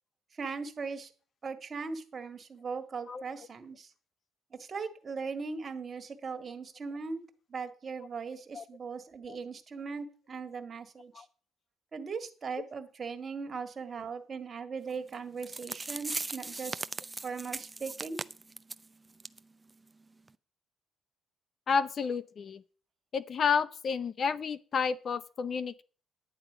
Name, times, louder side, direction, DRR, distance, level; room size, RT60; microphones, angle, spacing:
voice 1, 0.3-1.1 1.4-3.9 4.5-7.2 7.5-11.3 11.9-16.8 17.2-18.2, right 5 dB, 35° right, 7 dB, 1.8 m, -39 dB
sound 1, 15.1-15.2 15.4-18.8 19.2-19.4 19.7-19.8 20.3-20.4, right 3 dB, 20° right, 0.5 m, -38 dB
voice 2, 21.7-22.6 23.1-25.8, left 6 dB, 45° left, 16 dB, 0.7 m, -30 dB
11.0 x 9.5 x 5.0 m, 0.39 s
cardioid pair, 95°, 0 cm